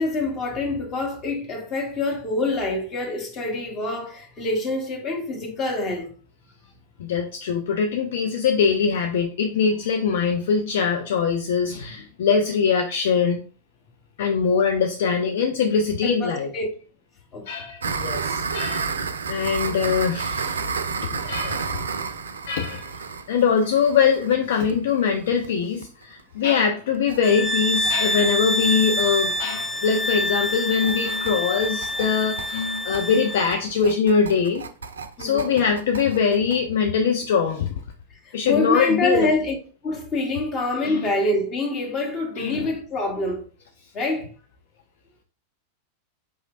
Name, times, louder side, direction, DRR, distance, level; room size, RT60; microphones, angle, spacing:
voice 1, 0.0-6.1 16.0-16.7 17.3-17.4 20.9-21.0 35.2-35.5 38.2-39.5 39.8-43.5 43.9-44.3, left 2 dB, 30° left, 1.1 m, -26 dB
voice 2, 7.0-13.4 14.2-16.5 17.5-19.0 19.3-20.6 21.2-21.8 22.5-22.9 23.3-34.6 35.2-37.7 38.3-39.3 40.8-41.0 42.4-42.7, left 6 dB, 60° left, 0.4 m, -22 dB
sound 1, 17.8-25.5 25.8-25.9 26.2-26.3 26.6-26.7 26.9-27.2 27.5-36.6, right 5 dB, 70° right, 0.4 m, -31 dB
sound 2, 27.2-33.6, left 1 dB, 5° right, 0.7 m, -26 dB
4.8 x 3.0 x 2.5 m
figure-of-eight pair, 90°, 0 cm